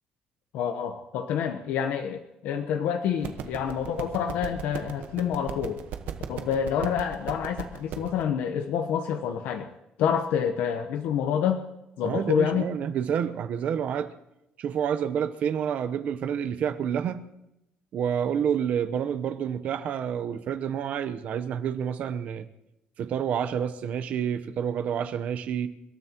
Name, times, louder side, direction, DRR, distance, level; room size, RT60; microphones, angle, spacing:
voice 1, 0.5-5.8 6.3-9.7 10.0-11.6 12.0-12.7, left 8 dB, 90° left, 1.1 m, -27 dB
sound 1, 3.2-8.2, right 8 dB, 75° right, 1.3 m, -38 dB
voice 2, 12.0-14.1 14.6-17.3 17.9-22.4 23.0-25.7, right 8 dB, 55° right, 0.9 m, -28 dB
29.0 x 13.5 x 3.0 m
cardioid pair, 155°, 3 cm